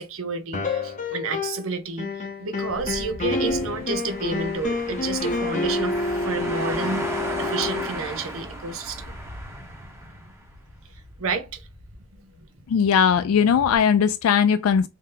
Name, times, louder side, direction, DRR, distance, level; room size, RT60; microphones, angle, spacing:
voice 1, 0.0-7.1 7.4-9.2 11.2-11.7, right 4 dB, 70° right, 0.6 m, -30 dB
sound 1, 0.5-1.7 2.0-7.9, left 3 dB, 35° left, 0.6 m, -28 dB
sound 2, 2.7-13.8, equal, 55° right, 1.0 m, -44 dB
sound 3, 3.6-10.3, right 1 dB, 10° right, 0.7 m, -35 dB
voice 2, 12.7-14.9, left 7 dB, 75° left, 0.3 m, -19 dB
3.3 x 2.8 x 3.7 m
head